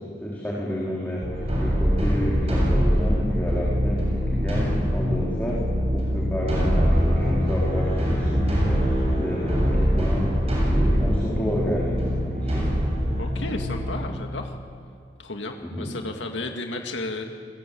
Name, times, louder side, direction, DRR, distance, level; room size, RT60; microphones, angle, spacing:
voice 1, 0.0-5.6 5.9-10.3 10.6-12.7 15.6-15.9, equal, 10° left, -5 dB, 4.5 m, -30 dB
sound 1, 1.2-13.9, equal, 35° right, 7.8 m, -23 dB
voice 2, 13.2-14.5 15.2-17.2, left 2 dB, 90° left, 3 dB, 2.2 m, -33 dB
29.5 x 22.5 x 8.7 m, 2.3 s
head